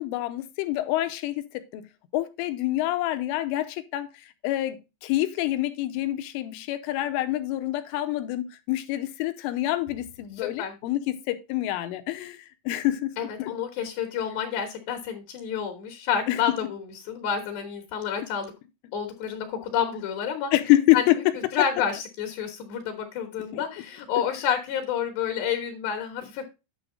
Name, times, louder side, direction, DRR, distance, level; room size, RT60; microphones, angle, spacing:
voice 1, 0.0-1.9 2.1-13.5 16.3-16.4 20.5-21.2 23.5-23.6, left 15 dB, 85° left, 3.2 m, -27 dB
voice 2, 13.2-18.5 18.9-20.5 20.9-21.0 21.5-26.4, left 8 dB, 65° left, 3.1 m, -29 dB
9.9 x 6.3 x 3.8 m
omnidirectional pair, 5.8 m